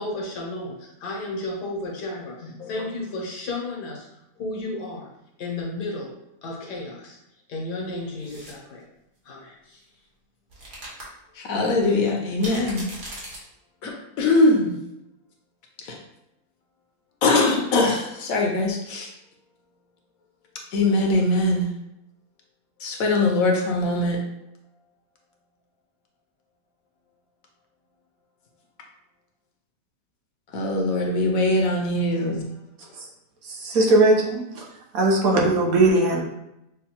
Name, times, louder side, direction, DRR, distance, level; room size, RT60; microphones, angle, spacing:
voice 1, 0.0-4.1 4.4-5.1 5.4-6.1 6.4-7.2 7.5-8.8 9.2-9.8, left 2 dB, 85° left, -1 dB, 1.6 m, -33 dB
sound 1, 8.2-8.6 10.5-11.0 11.5-11.6 12.4-13.4, right 1 dB, 50° right, 1.5 m, -38 dB
voice 2, 11.4-12.9 13.8-14.7 15.9-16.0 17.2-19.1 20.7-21.7 22.8-24.2 30.5-32.5, left 2 dB, 65° left, 1 dB, 1.0 m, -22 dB
voice 3, 33.4-34.6 34.9-36.2, right 2 dB, 65° right, -1 dB, 1.2 m, -19 dB
6.3 x 2.3 x 2.8 m, 0.87 s
omnidirectional pair, 1.7 m